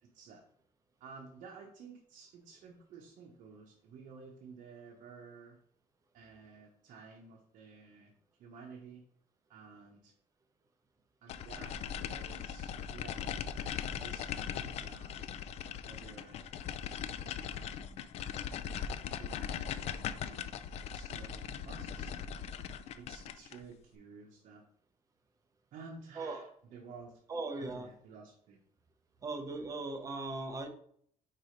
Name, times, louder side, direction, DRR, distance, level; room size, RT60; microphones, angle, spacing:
voice 1, 0.0-0.4 1.0-5.6 6.1-8.1 8.4-9.0 9.5-10.1 11.2-15.3 15.9-16.5 17.2-18.5 19.2-20.4 20.9-22.3 23.0-24.6 25.7-27.2 27.6-28.6, right 5 dB, 60° right, -1 dB, 1.0 m, -53 dB
sound 1, 11.3-23.6, left 8 dB, 50° left, 0.4 m, -40 dB
voice 2, 26.2-26.5 27.3-27.9 29.2-30.7, right 3 dB, 25° right, 5 dB, 0.8 m, -38 dB
4.8 x 4.2 x 5.0 m, 0.63 s
cardioid pair, 180°, 13 cm